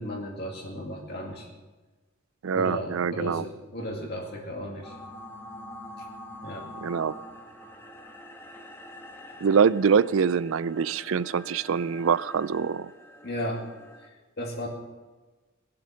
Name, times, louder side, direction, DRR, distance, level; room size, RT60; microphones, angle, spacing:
voice 1, 0.0-1.5 2.5-4.9 6.4-6.7 13.2-13.6 14.0-14.1 14.4-14.7, equal, 50° left, -1 dB, 2.3 m, -35 dB
voice 2, 2.4-3.4 6.8-7.1 9.4-12.9, right 6 dB, 65° right, 18 dB, 0.4 m, -24 dB
sound 1, 4.8-14.1, left 1 dB, 10° left, 1.5 m, -45 dB
20.0 x 7.8 x 6.4 m, 1.3 s
head